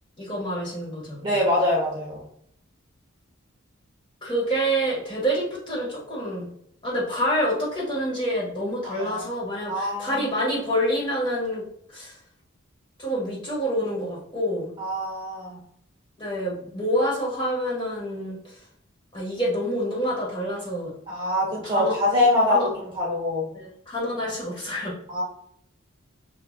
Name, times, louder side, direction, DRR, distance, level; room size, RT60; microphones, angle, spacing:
voice 1, 0.2-1.3 4.2-6.5 6.8-11.6 11.9-12.1 13.0-14.7 16.2-18.6 19.1-20.9 21.6-21.9 22.5-22.7 23.5-24.9, equal, 25° left, -6 dB, 1.6 m, -27 dB
voice 2, 1.2-2.2 8.8-9.3 9.7-10.4 14.8-15.6 21.1-23.5 24.2-24.3 25.1-25.2, left 1 dB, 25° right, -3 dB, 1.2 m, -24 dB
6.7 x 2.9 x 2.4 m, 0.71 s
head